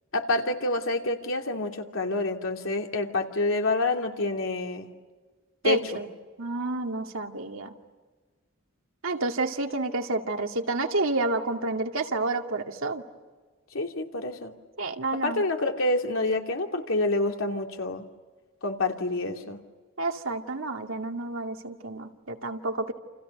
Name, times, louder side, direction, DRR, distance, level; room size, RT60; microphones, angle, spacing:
voice 1, 0.1-4.9 5.6-6.0 13.7-14.5 15.2-18.0 18.6-19.6, left 2 dB, 90° left, 3 dB, 2.8 m, -27 dB
voice 2, 5.6-6.1 6.4-7.7 9.0-13.0 14.8-15.4 20.0-22.9, right 2 dB, 90° right, 3 dB, 2.4 m, -29 dB
29.0 x 29.0 x 6.7 m, 1.4 s
head